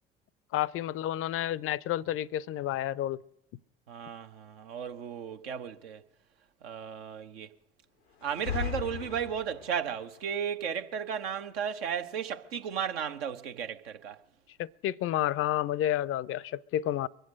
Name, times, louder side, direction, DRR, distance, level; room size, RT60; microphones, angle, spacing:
voice 1, 0.5-3.2 14.6-17.1, left 12 dB, 45° left, 0.5 m, -30 dB
voice 2, 3.9-6.0 6.6-7.5 8.2-14.2, right 8 dB, 80° right, 0.8 m, -34 dB
sound 1, 8.2-9.9, left 9 dB, 90° left, 0.6 m, -36 dB
23.0 x 7.9 x 6.3 m
figure-of-eight pair, 55°, 30 cm